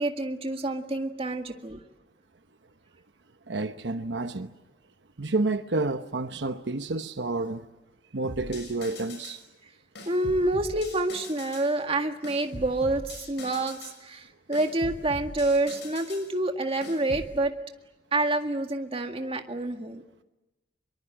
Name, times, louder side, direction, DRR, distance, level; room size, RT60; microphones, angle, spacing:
voice 1, 0.0-1.8 10.1-17.5 18.1-20.0, right 2 dB, 30° right, 1.9 m, -28 dB
voice 2, 3.5-4.5 5.2-7.6 8.1-9.4, right 3 dB, 75° right, 1.0 m, -29 dB
sound 1, 8.2-9.4 10.0-11.7 12.2-14.0 14.5-16.3 16.8-17.3, left 1 dB, 75° left, 6.7 m, -41 dB
25.0 x 23.0 x 8.8 m
head